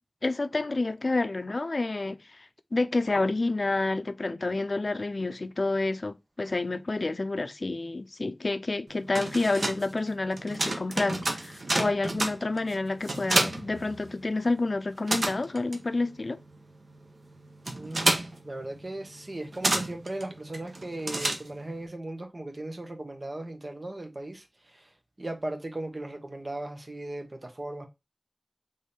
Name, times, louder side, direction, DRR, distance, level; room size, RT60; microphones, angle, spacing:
voice 1, 0.2-16.4, left 2 dB, 70° left, 0.4 m, -29 dB
sound 1, 8.9-14.5 14.8-21.8, right 2 dB, 90° right, 0.8 m, -31 dB
voice 2, 17.7-24.5 24.7-24.9 25.2-27.9, right 1 dB, 50° right, 1.1 m, -37 dB
3.6 x 3.5 x 4.1 m
wide cardioid pair, 60°, 0 cm